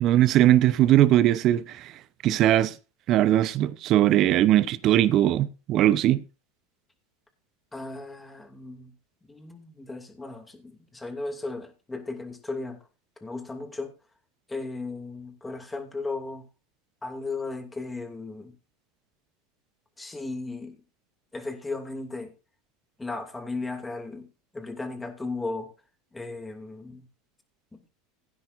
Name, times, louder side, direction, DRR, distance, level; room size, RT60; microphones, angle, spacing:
voice 1, 0.0-1.9 2.2-2.7 3.1-6.2, right 13 dB, 50° right, 0.8 m, -20 dB
voice 2, 7.7-8.9 9.3-12.8 13.2-13.9 14.5-16.5 17.0-18.5 20.0-20.7 21.3-22.3 23.0-24.3 24.5-25.7 26.1-27.1 27.7-27.8, left 3 dB, 10° left, 2.6 m, -35 dB
16.5 x 9.8 x 2.6 m
hypercardioid pair, 95°, 0 cm